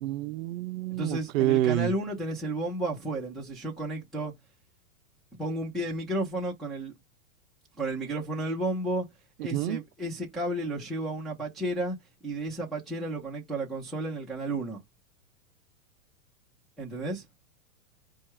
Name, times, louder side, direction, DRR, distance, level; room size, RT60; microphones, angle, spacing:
voice 1, 0.0-1.9 9.5-9.8, right 14 dB, 70° right, 0.5 m, -27 dB
voice 2, 1.0-4.3 5.4-6.9 7.8-9.1 9.4-12.0 12.2-14.8 16.8-17.3, right 1 dB, ahead, 0.6 m, -32 dB
4.4 x 2.3 x 4.6 m
hypercardioid pair, 150°, 41 cm